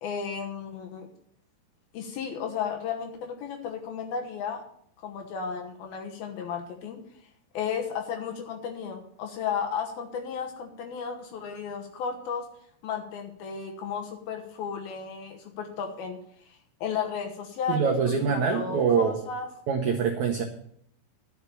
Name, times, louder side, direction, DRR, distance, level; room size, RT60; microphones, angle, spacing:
voice 1, 0.0-1.1 1.9-4.6 5.0-7.0 7.5-12.5 12.8-16.2 16.5-19.5, left 6 dB, 70° left, 3 dB, 2.8 m, -34 dB
voice 2, 17.7-19.2 19.7-20.4, right 6 dB, 80° right, 3 dB, 1.7 m, -24 dB
11.5 x 6.6 x 7.0 m, 0.68 s
omnidirectional pair, 4.8 m